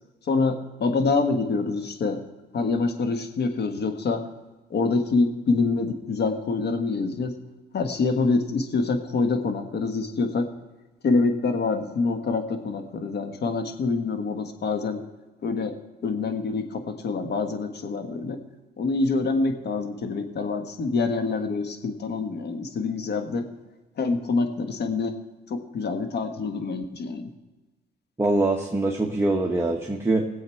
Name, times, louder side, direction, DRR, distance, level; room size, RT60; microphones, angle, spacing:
voice 1, 0.2-2.2 2.5-4.3 4.7-7.4 7.7-10.5 11.0-15.0 15.4-15.7 16.0-18.4 18.8-23.4 24.0-25.2 25.5-27.3, left 4 dB, 60° left, 6 dB, 1.5 m, -26 dB
voice 2, 28.2-30.3, right 2 dB, 15° right, 0 dB, 1.2 m, -23 dB
19.5 x 7.9 x 4.5 m, 1.2 s
cardioid pair, 90°, 20 cm